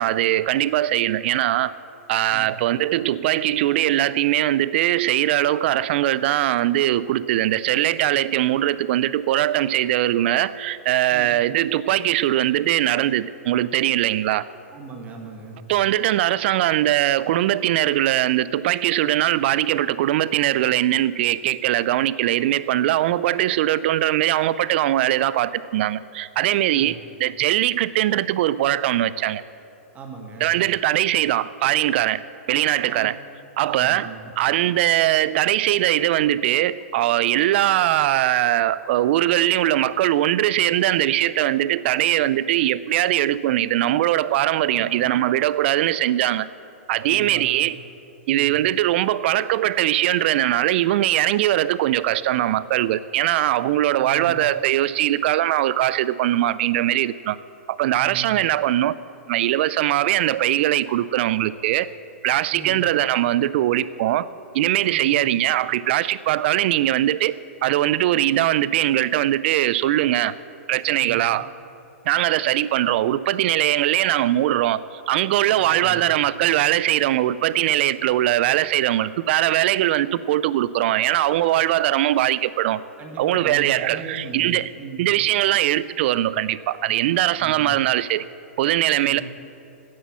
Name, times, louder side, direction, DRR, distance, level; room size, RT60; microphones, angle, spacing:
voice 1, 0.0-1.7 2.1-14.4 15.7-29.4 30.4-32.2 32.5-33.2 33.6-34.1 34.4-46.5 46.9-47.8 48.3-57.4 57.7-58.9 59.3-61.9 62.2-64.3 64.5-67.4 67.6-70.3 70.7-71.5 72.1-82.8 83.2-84.7 85.0-88.2 88.6-89.2, right 13 dB, 50° right, 17 dB, 0.4 m, -21 dB
voice 2, 14.7-15.6 26.7-27.0 29.9-30.5 32.9-33.1 33.6-34.3 44.7-45.2 47.0-47.7 48.3-48.5 54.0-54.4 58.0-58.3 62.5-62.8 64.9-65.2 71.0-71.3 75.6-76.1 83.0-85.1 87.4-87.8 89.0-89.2, right 4 dB, 20° right, 1 dB, 1.6 m, -38 dB
9.5 x 8.2 x 7.4 m, 2.6 s
hypercardioid pair, 135°, 8 cm